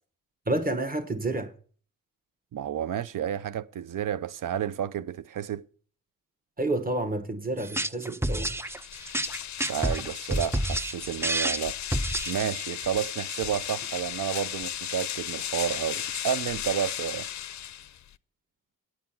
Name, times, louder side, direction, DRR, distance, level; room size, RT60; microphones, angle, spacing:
voice 1, 0.5-1.5 6.6-8.5, right 2 dB, 25° right, 1.4 m, -29 dB
voice 2, 2.5-5.6 9.7-11.8 12.3-17.3, right 9 dB, 65° right, 0.5 m, -31 dB
sound 1, 7.6-12.7, right 1 dB, 10° right, 0.4 m, -29 dB
sound 2, 8.5-18.2, left 11 dB, 55° left, 0.5 m, -35 dB
9.8 x 7.3 x 5.8 m
cardioid pair, 55°, 34 cm